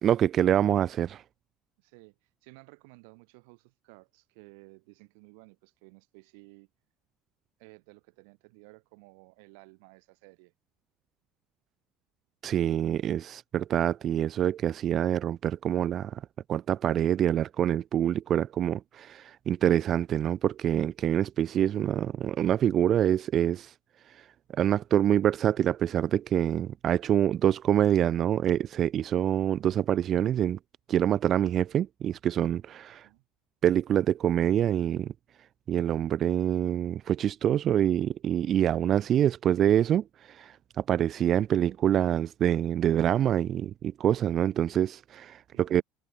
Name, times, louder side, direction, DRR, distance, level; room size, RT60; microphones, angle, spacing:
voice 1, 0.0-1.2 12.4-16.2 16.5-23.7 24.1-24.2 24.6-30.6 30.9-33.1 33.6-35.1 35.7-45.8, right 10 dB, 30° right, 0.3 m, -26 dB
voice 2, 1.8-6.7 7.6-10.5 33.0-33.2 45.5-45.8, right 31 dB, 80° right, 6.0 m, -55 dB
cardioid pair, 180°, 0 cm